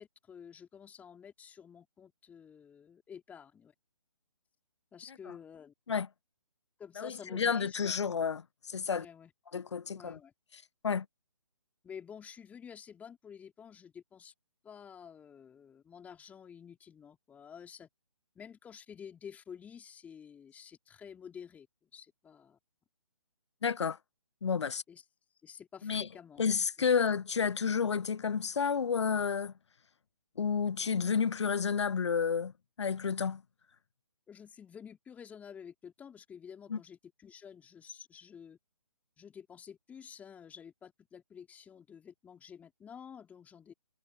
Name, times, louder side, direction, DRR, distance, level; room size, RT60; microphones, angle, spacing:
voice 1, 0.0-3.7 4.9-5.7 6.8-8.0 9.0-9.3 9.9-10.3 11.8-14.3 14.6-17.9 18.4-21.7 21.9-22.6 24.9-25.0 25.4-26.5 26.8-26.9 34.3-38.6 39.2-43.7, left 7 dB, 10° left, 3.6 m, -50 dB
voice 2, 7.0-9.1 9.5-10.2 10.8-11.1 23.6-24.0 24.4-24.8 25.8-26.1 26.4-29.5 30.4-32.5 32.8-33.4 36.7-36.8, left 6 dB, 55° left, 0.9 m, -30 dB
figure-of-eight pair, 140°, 18 cm